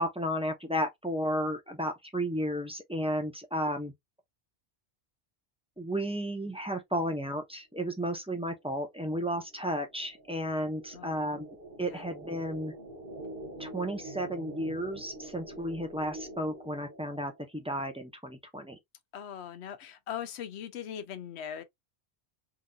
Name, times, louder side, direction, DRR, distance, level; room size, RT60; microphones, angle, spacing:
voice 1, 0.0-3.9 5.8-11.5 11.8-12.7 13.6-18.8, equal, 5° right, 0.5 m, -33 dB
sound 1, 8.6-17.4, right 2 dB, 55° right, 1.2 m, -46 dB
voice 2, 19.1-21.6, left 9 dB, 90° left, 0.9 m, -40 dB
3.9 x 2.5 x 2.3 m
omnidirectional pair, 1.1 m